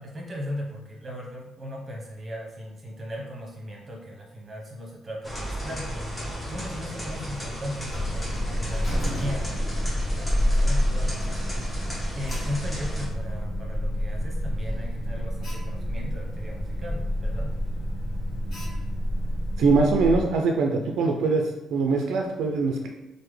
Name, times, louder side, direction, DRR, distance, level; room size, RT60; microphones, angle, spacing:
voice 1, 0.0-11.8 12.1-17.6, left 1 dB, 30° right, -2 dB, 0.9 m, -37 dB
sound 1, 5.2-13.1, equal, 15° left, 1.0 m, -35 dB
Alarm, 7.9-20.3, equal, 55° left, 1.2 m, -28 dB
voice 2, 19.6-21.4 21.7-22.9, right 4 dB, 80° right, 2 dB, 0.3 m, -22 dB
3.3 x 2.1 x 3.2 m, 1.0 s
cardioid pair, 90°, 0 cm